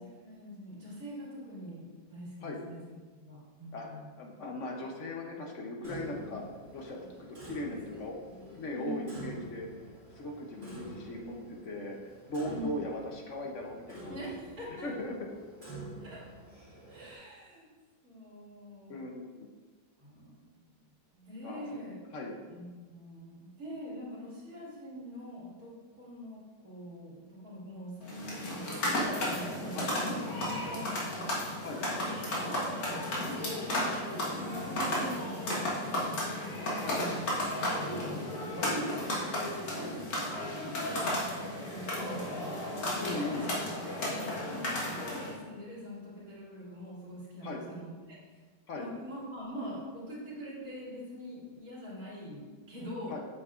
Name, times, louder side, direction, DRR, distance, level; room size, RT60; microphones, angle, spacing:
voice 1, 0.2-2.8 3.2-4.1 6.0-6.4 7.0-7.1 7.7-7.8 8.3-9.4 10.5-11.0 12.5-12.8 14.1-14.9 16.0-16.2 16.9-17.7 18.0-19.1 20.0-20.5 21.1-22.0 22.5-30.9 32.0-32.7 33.1-36.2 36.7-42.6 42.9-43.5 43.9-48.2 48.7-53.1, equal, 55° right, -7 dB, 2.9 m, -43 dB
voice 2, 4.2-6.4 6.7-8.1 8.4-9.7 10.2-14.1 14.8-15.2 18.9-19.5 21.4-21.8 22.1-22.3 29.7-30.0 31.6-31.8 33.3-33.5 36.8-37.0 38.6-38.7 40.6-40.8 43.0-43.5 47.4-47.6 48.7-48.9 53.1-53.2, left 1 dB, 55° left, 0 dB, 1.0 m, -39 dB
Clock, 5.8-17.2, right 2 dB, 35° right, 2.6 m, -48 dB
sound 1, 28.0-45.4, left 1 dB, 70° left, 2.1 m, -34 dB
8.4 x 6.9 x 2.5 m, 1.4 s
omnidirectional pair, 1.9 m